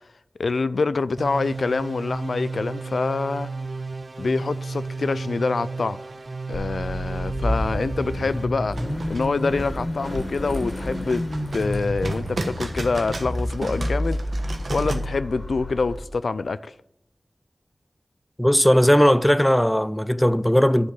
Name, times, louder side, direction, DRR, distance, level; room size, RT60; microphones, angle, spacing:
voice 1, 0.4-3.5 4.2-6.0 6.5-8.8 9.1-11.2 11.5-14.2 14.7-16.7, left 4 dB, 85° left, 0.3 m, -25 dB
sound 1, 1.2-8.4, right 3 dB, 50° right, 0.5 m, -33 dB
Car / Idling / Accelerating revving vroom, 6.5-16.0, equal, 35° left, 2.1 m, -29 dB
sound 2, 8.7-15.0, right 2 dB, 75° right, 1.3 m, -34 dB
voice 2, 18.4-20.9, equal, 5° left, 0.3 m, -18 dB
10.5 x 5.2 x 7.1 m
wide cardioid pair, 80°, 0 cm